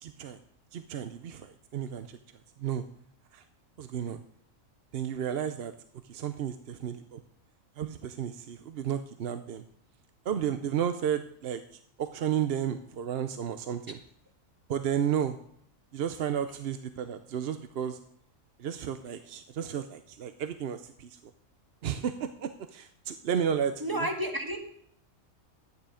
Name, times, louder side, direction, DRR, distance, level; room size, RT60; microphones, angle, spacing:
voice 1, 0.0-0.4 0.7-2.2 2.6-2.8 3.3-3.4 3.8-4.2 4.9-5.7 6.1-7.2 7.8-9.6 10.3-11.6 12.0-14.0 14.7-15.4 15.9-18.0 18.6-21.2 21.8-24.1, right 9 dB, 55° right, 9 dB, 0.8 m, -32 dB
voice 2, 23.8-24.6, right 1 dB, 15° right, 3 dB, 1.6 m, -32 dB
11.5 x 9.8 x 5.0 m, 0.68 s
omnidirectional pair, 1.4 m